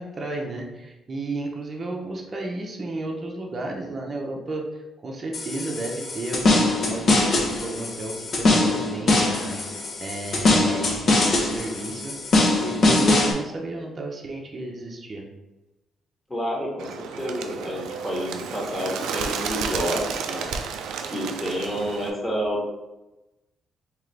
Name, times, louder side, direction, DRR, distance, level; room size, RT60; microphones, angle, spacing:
voice 1, 0.0-4.6 5.0-12.1 12.6-15.2, right 2 dB, 35° right, 0 dB, 0.7 m, -33 dB
sound 1, 5.3-13.3, left 2 dB, 55° left, 0.9 m, -22 dB
voice 2, 16.3-20.5 21.1-22.7, equal, 15° left, -4 dB, 1.2 m, -29 dB
Bird, 16.8-22.1, right 6 dB, 85° right, 0.3 m, -32 dB
3.7 x 2.9 x 3.3 m, 1.0 s
cardioid pair, 90°, 0 cm